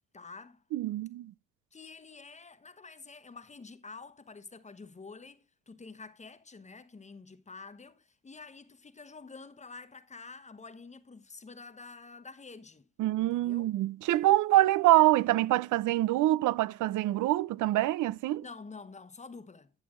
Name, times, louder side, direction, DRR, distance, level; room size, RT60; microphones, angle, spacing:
voice 1, 0.1-0.6 1.7-12.8 13.2-13.7 18.4-19.7, left 4 dB, 25° left, 1.0 m, -48 dB
voice 2, 0.7-1.3 13.0-18.4, right 16 dB, 80° right, 0.5 m, -25 dB
10.5 x 6.9 x 3.7 m
cardioid pair, 90°, 30 cm